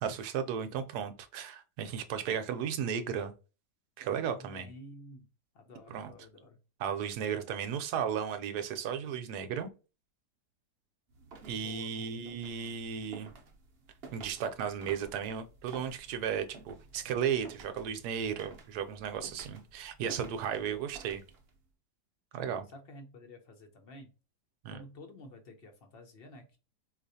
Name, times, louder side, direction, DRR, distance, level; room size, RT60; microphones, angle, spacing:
voice 1, 0.0-3.3 4.0-4.7 5.9-6.1 6.8-9.7 11.4-13.3 14.1-21.2 22.3-22.7 24.6-24.8, right 8 dB, 75° right, 1.1 m, -35 dB
voice 2, 4.3-5.3 5.5-6.6 11.6-12.2 20.6-20.9 22.7-24.1 24.7-26.6, left 1 dB, 50° left, 0.8 m, -51 dB
sound 1, 11.1-21.6, right 3 dB, 60° right, 0.6 m, -53 dB
4.5 x 2.4 x 2.7 m
omnidirectional pair, 1.8 m